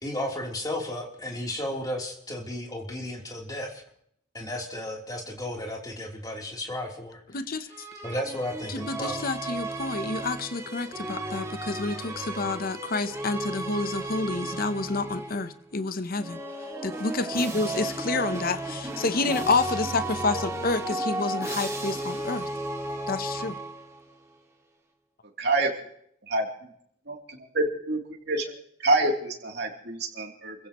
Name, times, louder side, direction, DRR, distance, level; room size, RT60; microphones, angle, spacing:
voice 1, 0.0-3.8 4.3-7.2 8.0-9.2, left 1 dB, 20° left, 0 dB, 3.3 m, -34 dB
voice 2, 7.3-7.9 8.7-16.4 16.8-22.5 23.1-23.6, left 3 dB, 45° left, 11 dB, 0.8 m, -29 dB
sound 1, 7.7-15.6 16.2-24.1, right 2 dB, 15° right, 2.0 m, -34 dB
voice 3, 25.4-25.7 26.3-26.4 27.1-27.2 27.5-28.0 28.3-28.5 28.8-30.5, right 2 dB, 55° right, 1 dB, 3.0 m, -26 dB
29.0 x 15.5 x 3.1 m, 0.67 s
head